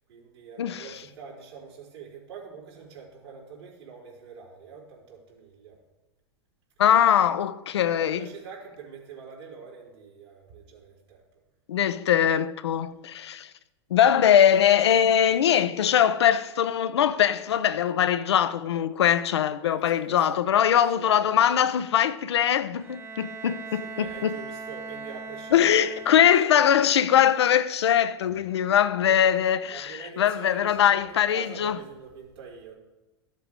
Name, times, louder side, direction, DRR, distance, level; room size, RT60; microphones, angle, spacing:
voice 1, 0.1-5.8 7.8-11.2 14.4-15.0 19.4-20.6 20.9-21.5 23.5-26.6 27.1-27.2 29.7-32.8, right 5 dB, 80° right, 4.1 m, -45 dB
voice 2, 6.8-8.2 11.7-13.5 13.9-24.3 25.5-29.9 30.2-31.8, left 9 dB, 80° left, 0.6 m, -22 dB
Bowed string instrument, 22.8-26.7, right 4 dB, 15° right, 0.9 m, -40 dB
14.0 x 7.6 x 3.7 m
hypercardioid pair, 95°, 14 cm